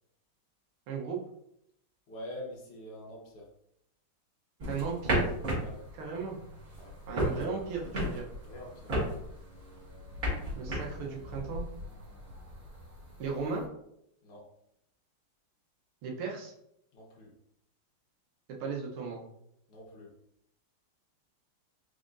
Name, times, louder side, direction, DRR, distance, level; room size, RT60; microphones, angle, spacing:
voice 1, 0.9-1.2 4.7-5.3 6.0-6.4 7.1-8.3 10.6-11.6 13.2-13.6 16.0-16.5 18.5-19.2, right 5 dB, 85° right, 0 dB, 1.8 m, -36 dB
voice 2, 2.1-3.5 5.5-5.8 6.8-7.0 8.4-9.0 14.2-14.5 16.9-17.3 19.7-20.1, left 1 dB, 90° left, -3 dB, 2.1 m, -45 dB
sound 1, 4.6-13.6, equal, 40° right, 2.0 m, -35 dB
4.8 x 3.7 x 2.5 m, 0.77 s
omnidirectional pair, 2.3 m